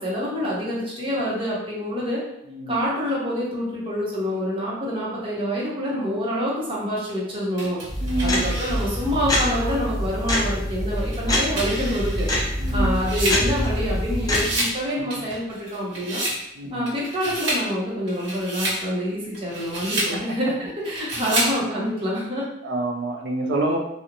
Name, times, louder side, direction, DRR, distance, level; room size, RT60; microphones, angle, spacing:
voice 1, 0.0-2.2 2.7-7.8 8.2-12.3 12.7-16.2 16.7-22.5, equal, 25° right, -6 dB, 0.7 m, -26 dB
voice 2, 2.4-2.8 8.0-8.6 12.6-13.0 16.6-17.0 20.1-20.4 22.6-23.8, right 2 dB, 65° right, 1 dB, 0.4 m, -27 dB
sound 1, 7.6-9.1 9.7-9.8 11.0-14.0 14.2-14.8 15.1-16.4 16.9-17.7 18.1-18.8 19.3-20.2 20.9-21.6, right 1 dB, 80° right, 1.0 m, -29 dB
sound 2, 7.9-14.5, left 1 dB, 20° left, 0.4 m, -25 dB
2.5 x 2.0 x 2.8 m, 0.82 s
head